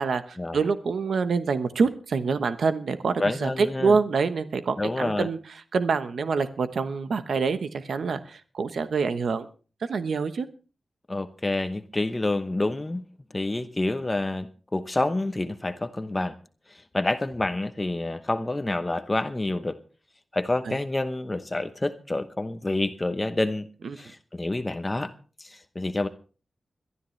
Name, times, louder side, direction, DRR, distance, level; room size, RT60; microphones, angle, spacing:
voice 1, 0.0-5.4 5.7-9.5 9.9-10.5 20.6-20.8 23.8-24.0, right 5 dB, 85° right, 10 dB, 1.0 m, -26 dB
voice 2, 3.2-4.0 4.8-5.3 11.1-13.0 13.3-16.4 16.7-19.8 20.3-23.7 24.0-25.1 25.4-26.1, left 2 dB, 20° left, 9 dB, 0.9 m, -28 dB
22.0 x 12.5 x 3.2 m, 0.37 s
wide cardioid pair, 115°, 0 cm